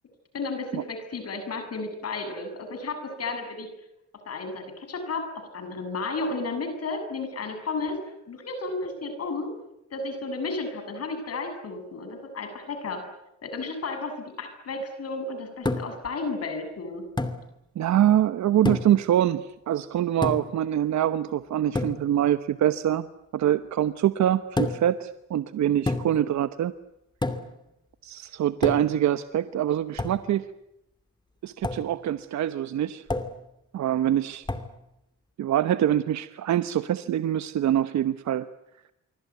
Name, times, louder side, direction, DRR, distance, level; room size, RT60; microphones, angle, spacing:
voice 1, 0.3-3.7 4.3-8.0 8.3-9.5 9.9-13.0 13.4-17.0, left 3 dB, 55° left, 7 dB, 7.2 m, -33 dB
sound 1, 15.6-16.1 17.2-17.4 18.6-19.0 20.2-20.6 21.7-22.0 24.6-24.9 25.9-26.3 27.2-27.6 28.6-29.0 30.0-30.2 31.6-31.9 33.1-33.4 34.5-34.7, left 2 dB, 15° left, 2.6 m, -29 dB
voice 2, 17.7-23.0 23.3-26.7 28.0-30.5 31.4-33.0 33.7-34.5 35.4-38.5, right 11 dB, 65° right, 12 dB, 1.1 m, -24 dB
25.0 x 24.5 x 9.5 m, 0.88 s
cardioid pair, 90°, 30 cm